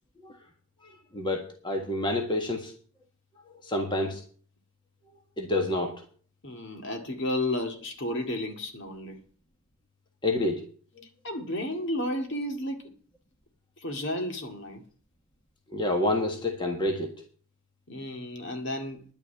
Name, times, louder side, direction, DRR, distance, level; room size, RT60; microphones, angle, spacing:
voice 1, 0.8-2.7 3.6-4.2 5.4-5.9 10.2-10.6 15.7-17.1, left 1 dB, 20° left, 1.6 m, -28 dB
voice 2, 6.4-9.2 11.2-12.9 13.8-14.8 17.9-19.0, left 1 dB, 55° left, 2.2 m, -32 dB
11.0 x 6.3 x 8.8 m
head